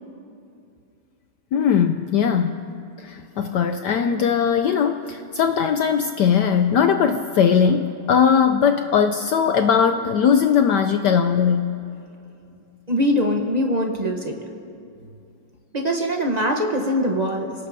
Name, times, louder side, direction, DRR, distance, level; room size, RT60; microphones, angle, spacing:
voice 1, 1.5-2.6 3.0-11.7, left 7 dB, 80° left, 7 dB, 0.9 m, -19 dB
voice 2, 12.9-14.4 15.7-17.5, equal, 65° right, 1 dB, 0.4 m, -22 dB
29.0 x 18.0 x 2.7 m, 2.6 s
omnidirectional pair, 2.4 m